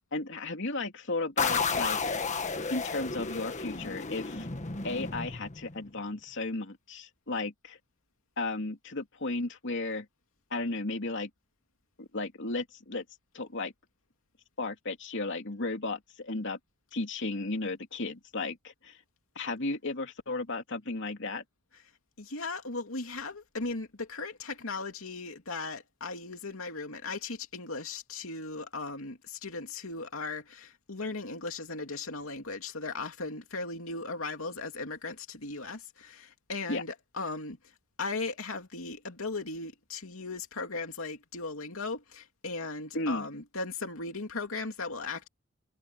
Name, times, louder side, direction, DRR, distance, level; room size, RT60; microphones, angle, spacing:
voice 1, 0.1-2.0 2.7-4.5 4.8-7.8 8.4-10.1 10.5-11.3 12.0-13.0 13.3-13.7 14.6-16.6 16.9-19.0 19.3-21.4 36.7-36.8 42.9-43.3, left 2 dB, 60° left, 2.9 m, -34 dB
sound 1, 1.4-5.9, left 4 dB, 35° left, 1.6 m, -32 dB
voice 2, 22.2-37.6 38.0-45.3, left 3 dB, 90° left, 2.6 m, -37 dB
head